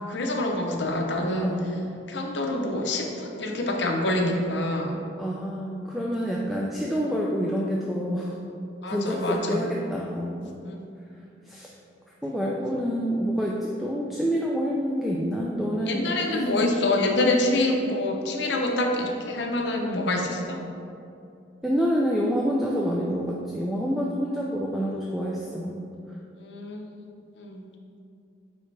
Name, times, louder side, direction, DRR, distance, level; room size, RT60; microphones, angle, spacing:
voice 1, 0.1-1.5 2.1-5.0 8.8-9.6 10.6-10.8 15.9-20.6 26.4-26.9 27.4-27.7, left 2 dB, 70° left, 1 dB, 0.7 m, -26 dB
voice 2, 1.4-1.7 5.2-8.4 8.9-10.5 11.5-11.7 12.2-16.4 21.6-25.8, equal, ahead, -4 dB, 0.3 m, -27 dB
9.0 x 3.4 x 3.3 m, 2.6 s
head